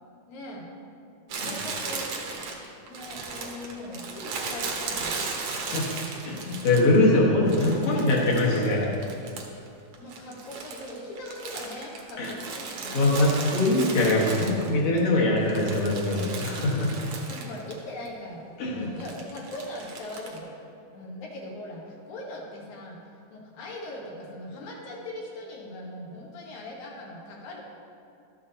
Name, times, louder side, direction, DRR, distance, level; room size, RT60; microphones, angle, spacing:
voice 1, 0.3-0.7 1.3-2.1 2.9-5.2 10.0-13.1 17.2-20.5 20.9-23.0 23.3-27.6, left 1 dB, 80° left, -2 dB, 2.7 m, -40 dB
Crumpling crinkling, 1.3-7.0 7.5-9.7 9.9-15.0 15.4-17.8 18.1-18.2 19.0-20.4, right 4 dB, 70° right, 2.0 m, -36 dB
voice 2, 5.6-5.9 6.2-8.9 12.2-12.3 12.9-16.9 18.6-19.0, left 2 dB, 55° left, -4 dB, 2.3 m, -23 dB
12.5 x 7.6 x 2.8 m, 2.5 s
omnidirectional pair, 3.4 m